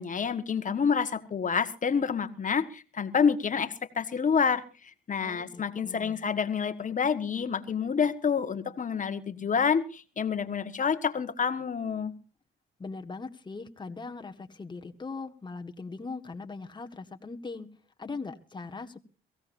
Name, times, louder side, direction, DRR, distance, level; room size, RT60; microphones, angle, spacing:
voice 1, 0.0-12.1, left 6 dB, 40° left, 11 dB, 1.5 m, -28 dB
voice 2, 5.2-6.2 12.8-17.7 18.0-19.0, left 4 dB, 20° left, 6 dB, 1.6 m, -40 dB
23.0 x 16.0 x 2.7 m, 0.34 s
cardioid pair, 90°, 20 cm